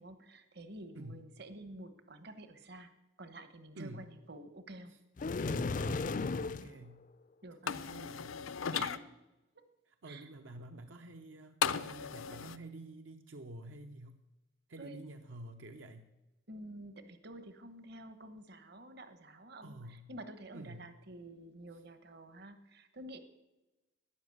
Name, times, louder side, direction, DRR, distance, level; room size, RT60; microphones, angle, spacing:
voice 1, 0.0-2.9 3.2-4.9 7.4-7.9 8.7-9.1 10.0-10.3 14.8-15.0 16.5-23.2, right 1 dB, 55° right, 10 dB, 1.2 m, -50 dB
voice 2, 3.8-4.1 4.9-5.0 5.4-6.1 6.4-7.1 7.6-8.4 8.7-8.9 9.8-14.2 14.7-16.1 19.6-20.1 20.5-20.9, right 1 dB, 70° right, 6 dB, 0.8 m, -49 dB
sound 1, 5.2-6.7, left 3 dB, 40° left, 0.4 m, -34 dB
sound 2, 7.7-9.0 11.6-12.6, left 7 dB, 85° left, 0.6 m, -36 dB
12.5 x 10.0 x 7.9 m, 1.0 s
head